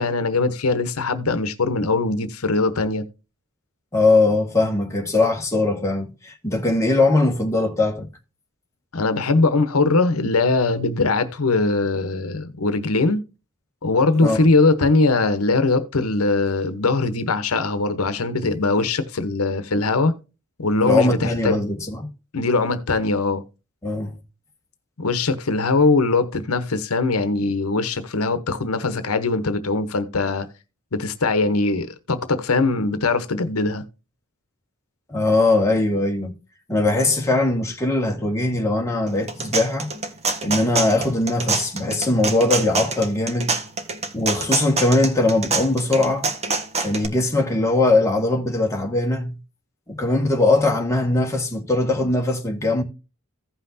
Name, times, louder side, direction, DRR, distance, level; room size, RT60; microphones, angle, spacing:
voice 1, 0.0-3.0 8.9-13.2 13.8-20.2 20.6-21.6 22.3-23.4 25.0-30.5 30.9-33.8, left 3 dB, 80° left, 0.9 m, -21 dB
voice 2, 3.9-8.1 14.2-14.4 20.8-22.1 23.8-24.2 35.1-36.3 36.7-39.9 40.4-43.5 44.1-46.3 46.8-49.3 49.9-52.8, left 2 dB, 15° left, 1.7 m, -20 dB
sound 1, 39.1-47.1, right 4 dB, 30° right, 1.3 m, -25 dB
15.5 x 5.7 x 2.7 m
head